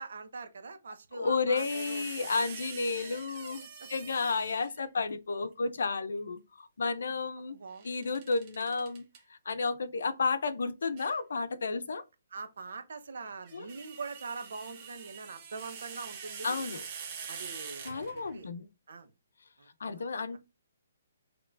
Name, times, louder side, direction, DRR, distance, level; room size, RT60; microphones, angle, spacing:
voice 1, 0.0-2.1 3.4-3.9 5.4-5.5 7.0-7.1 7.5-7.9 12.3-16.7 17.3-18.5 18.9-19.1 19.6-20.1, right 4 dB, 65° right, 0.9 m, -43 dB
voice 2, 1.2-3.6 3.9-7.6 7.8-9.0 9.3-12.0 13.5-13.6 16.4-16.8 17.8-18.7 19.8-20.4, left 4 dB, 75° left, 0.7 m, -32 dB
sound 1, 1.6-4.9 7.7-9.2 11.0-11.2 13.3-18.4, right 6 dB, 25° right, 1.0 m, -45 dB
6.0 x 3.1 x 2.5 m
hypercardioid pair, 170°, 0 cm